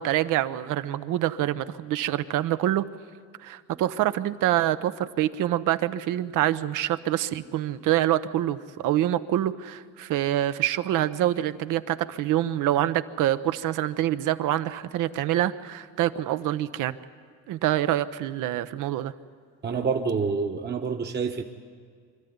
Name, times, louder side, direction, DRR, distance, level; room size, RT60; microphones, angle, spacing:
voice 1, 0.0-2.8 3.4-17.0 17.5-19.1, right 13 dB, 85° right, 12 dB, 0.8 m, -26 dB
voice 2, 19.6-21.4, right 5 dB, 35° right, 2 dB, 1.0 m, -27 dB
25.0 x 13.0 x 9.5 m, 2.1 s
cardioid pair, 125°, 31 cm